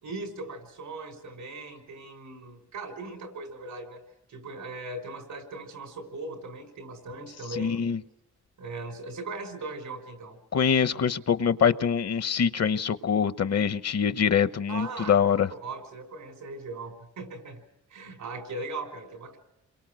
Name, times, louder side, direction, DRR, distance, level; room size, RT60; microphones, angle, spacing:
voice 1, 0.0-4.0 4.3-7.9 8.6-10.4 14.7-17.6 17.9-19.4, right 2 dB, 90° right, 5.7 m, -39 dB
voice 2, 7.6-8.0 10.5-15.5, left 7 dB, 55° left, 0.9 m, -24 dB
28.5 x 23.5 x 6.4 m
wide cardioid pair, 115°, 30 cm